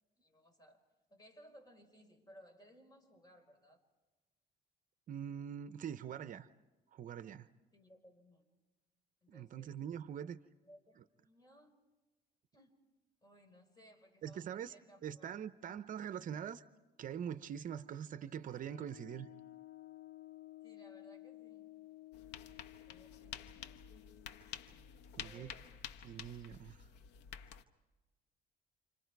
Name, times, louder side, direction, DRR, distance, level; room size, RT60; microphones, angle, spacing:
voice 1, 0.2-0.8 1.1-3.9 7.7-8.4 9.2-9.8 10.5-11.8 12.5-12.8 13.2-15.3 20.6-21.7 22.9-23.8 25.2-25.7, equal, 25° left, 4 dB, 4.6 m, -62 dB
voice 2, 5.1-6.5 6.9-7.5 9.3-10.4 14.2-14.7 15.0-16.6 17.0-19.3 25.2-25.5 26.0-26.9, right 9 dB, 50° right, 12 dB, 0.7 m, -43 dB
sound 1, 18.4-25.9, left 16 dB, 65° left, 0.7 m, -56 dB
sound 2, 22.1-27.6, left 9 dB, 85° left, 1.1 m, -50 dB
30.0 x 27.5 x 4.7 m, 1.2 s
cardioid pair, 110°, 17 cm